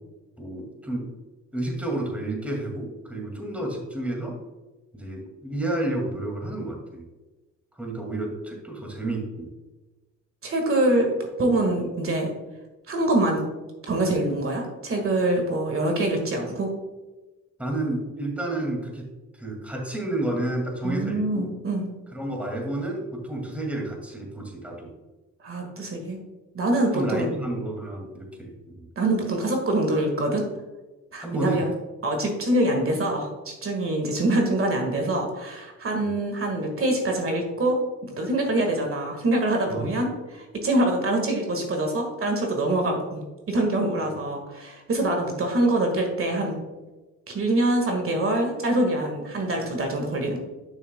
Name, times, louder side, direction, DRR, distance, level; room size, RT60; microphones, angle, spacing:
voice 1, 0.4-1.1 1.5-4.4 4.9-7.0 7.8-9.5 17.6-19.1 19.4-21.5 22.1-24.9 26.9-28.7 31.2-31.6 36.0-36.2 39.7-39.9, right 1 dB, 5° right, 0 dB, 2.1 m, -30 dB
voice 2, 10.4-11.1 11.4-12.3 12.9-13.4 13.9-16.7 20.8-21.9 25.4-26.2 26.5-27.3 28.9-30.4 31.1-31.7 32.0-46.6 47.3-50.4, right 1 dB, 45° right, 2 dB, 1.7 m, -25 dB
11.0 x 6.3 x 2.2 m, 1.2 s
cardioid pair, 90°, 30 cm